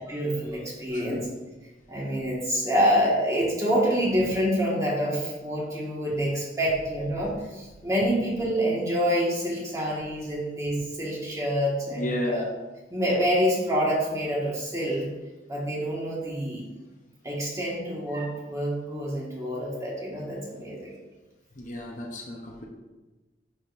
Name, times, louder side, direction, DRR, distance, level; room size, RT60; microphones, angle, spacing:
voice 1, 0.1-1.3 1.9-12.4 12.9-15.1 15.5-16.6 17.2-21.0, equal, 15° right, -5 dB, 1.7 m, -27 dB
voice 2, 0.9-1.2 11.9-12.5 21.6-22.7, left 1 dB, 45° left, 0 dB, 0.9 m, -32 dB
10.5 x 5.0 x 2.6 m, 1.2 s
head